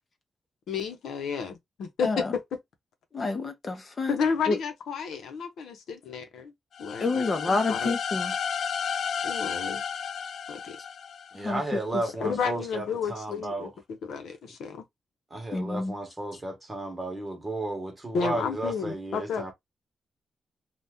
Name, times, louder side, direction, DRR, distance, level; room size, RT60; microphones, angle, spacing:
voice 1, 0.7-2.2 4.1-6.5 6.8-7.3 7.7-7.9 9.2-9.8 10.5-10.8 12.2-14.8 18.1-19.5, left 6 dB, 85° left, 0.8 m, -31 dB
voice 2, 2.0-2.3 3.1-4.2 4.5-4.6 7.0-8.3 11.4-11.8 12.2-12.4 15.5-15.9, left 3 dB, 35° left, 0.7 m, -28 dB
sound 1, 6.7-11.6, left 7 dB, 65° left, 0.3 m, -32 dB
voice 3, 11.3-13.7 15.3-19.5, right 2 dB, 20° right, 1.1 m, -33 dB
2.7 x 2.4 x 3.4 m
cardioid pair, 120°, 0 cm